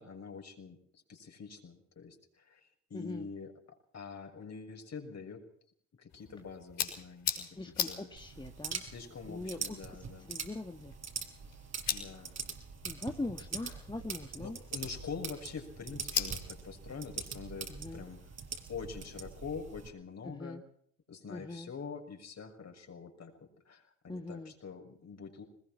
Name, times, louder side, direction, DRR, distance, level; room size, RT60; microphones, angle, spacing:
voice 1, 0.0-5.4 6.0-8.1 8.8-10.3 11.9-12.3 14.4-18.2 18.7-20.6 21.1-25.4, left 5 dB, 45° left, 3 dB, 6.5 m, -45 dB
voice 2, 2.9-3.3 7.4-8.8 9.3-9.8 10.2-10.9 12.1-12.3 12.8-14.6 17.7-18.0 20.2-20.6 21.3-21.7 24.1-24.5, left 2 dB, 10° left, 5 dB, 1.8 m, -42 dB
sound 1, 6.1-18.4, left 8 dB, 60° left, 6.0 m, -42 dB
sound 2, 8.2-19.9, right 5 dB, 45° right, 4.9 m, -43 dB
21.5 x 20.5 x 6.1 m, 0.63 s
hypercardioid pair, 55°, 38 cm